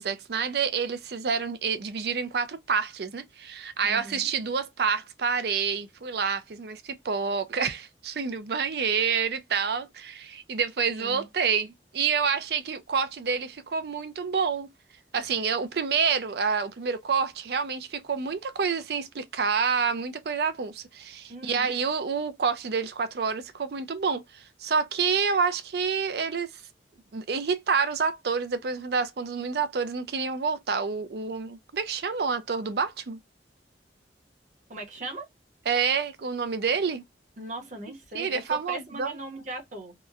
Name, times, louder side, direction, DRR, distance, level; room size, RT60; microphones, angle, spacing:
voice 1, 0.0-14.7 15.1-26.5 27.1-33.2 35.7-37.0 38.1-39.2, right 5 dB, 60° right, 0.5 m, -28 dB
voice 2, 3.8-4.3 10.9-11.3 21.3-21.7 34.7-35.3 37.4-39.9, right 2 dB, 45° right, 0.8 m, -39 dB
2.9 x 2.1 x 2.3 m
head